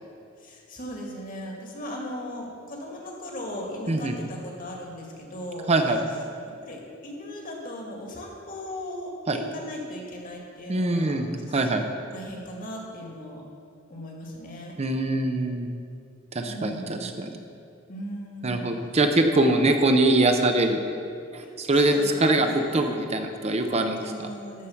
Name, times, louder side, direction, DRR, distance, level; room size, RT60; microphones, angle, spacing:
voice 1, 0.4-5.7 6.6-11.2 11.5-11.6 12.1-13.4 13.9-14.7 16.4-17.1 17.9-18.8 21.4-23.1 24.0-24.7, equal, 40° left, -1 dB, 1.9 m, -38 dB
voice 2, 5.7-6.0 9.3-9.4 10.7-11.8 14.8-15.7 16.3-17.3 18.4-20.8 21.3-21.9 22.2-22.5 22.7-24.0, right 2 dB, 30° right, 5 dB, 0.6 m, -23 dB
12.5 x 4.9 x 7.0 m, 2.6 s
head